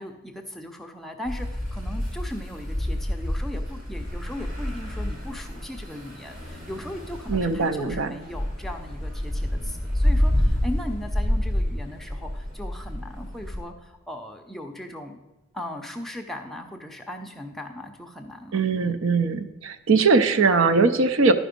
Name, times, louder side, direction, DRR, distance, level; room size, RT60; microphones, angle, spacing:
voice 1, 0.0-15.2 15.5-19.0, left 1 dB, ahead, 3 dB, 0.5 m, -38 dB
sound 1, 1.2-13.6, left 1 dB, 40° right, 2.3 m, -28 dB
voice 2, 7.3-8.1 18.5-21.3, right 4 dB, 60° right, 10 dB, 0.5 m, -21 dB
11.0 x 5.0 x 5.1 m, 0.99 s
head